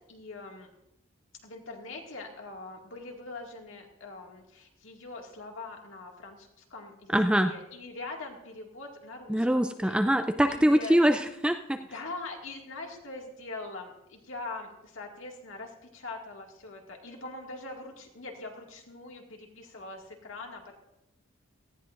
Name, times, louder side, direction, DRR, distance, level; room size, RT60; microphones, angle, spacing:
voice 1, 0.1-0.7 1.4-7.1 7.4-9.9 10.5-11.0 11.9-20.7, left 3 dB, 70° left, 1 dB, 2.1 m, -42 dB
voice 2, 7.1-7.5 9.3-11.8, equal, 5° right, 7 dB, 0.4 m, -23 dB
18.0 x 14.5 x 2.6 m, 0.85 s
head